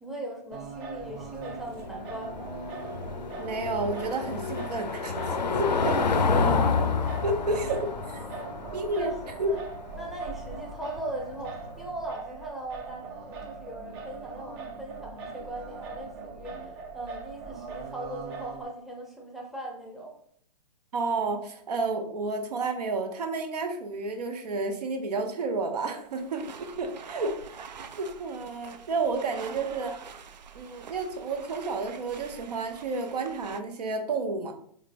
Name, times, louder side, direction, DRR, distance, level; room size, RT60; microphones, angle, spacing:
voice 1, 0.0-2.6 5.8-6.6 8.3-8.5 8.9-9.6 9.9-20.2 29.5-29.7, right 1 dB, ahead, -1 dB, 0.7 m, -39 dB
Singing, 0.5-18.6, right 4 dB, 35° right, 0.6 m, -41 dB
Car passing by / Engine, 1.0-11.7, left 4 dB, 90° left, 0.5 m, -29 dB
voice 2, 3.4-6.0 7.2-8.2 8.7-9.1 9.4-9.5 20.9-27.6 28.0-29.9 30.5-34.5, right 3 dB, 70° right, 6 dB, 0.8 m, -31 dB
sound 1, 26.0-33.6, right 6 dB, 85° right, 0.4 m, -46 dB
3.8 x 3.3 x 2.6 m, 0.63 s
hypercardioid pair, 125°, 21 cm